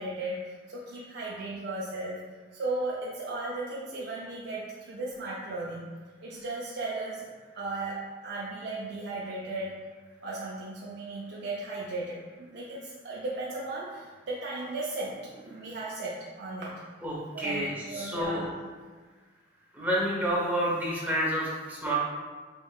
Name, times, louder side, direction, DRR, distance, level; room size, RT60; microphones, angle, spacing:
voice 1, 0.0-2.2 2.5-5.9 6.2-7.2 7.6-9.7 10.2-16.8 17.3-18.6, right 2 dB, 65° right, -5 dB, 0.5 m, -36 dB
voice 2, 17.0-17.7 17.9-18.4 19.7-21.9, equal, 10° right, -6 dB, 0.8 m, -29 dB
3.8 x 3.5 x 2.3 m, 1.4 s
head